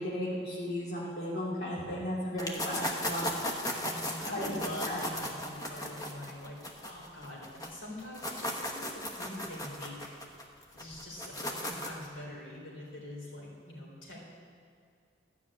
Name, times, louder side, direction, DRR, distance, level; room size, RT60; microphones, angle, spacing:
voice 1, 0.0-3.4 4.3-4.6 4.9-5.0, equal, 55° left, -7 dB, 2.4 m, -35 dB
sound 1, 2.4-7.7 8.0-12.1, left 1 dB, 20° left, 1.1 m, -36 dB
voice 2, 3.8-10.2 10.7-14.2, left 1 dB, 90° left, -4 dB, 3.8 m, -44 dB
13.0 x 6.0 x 8.7 m, 2.2 s
head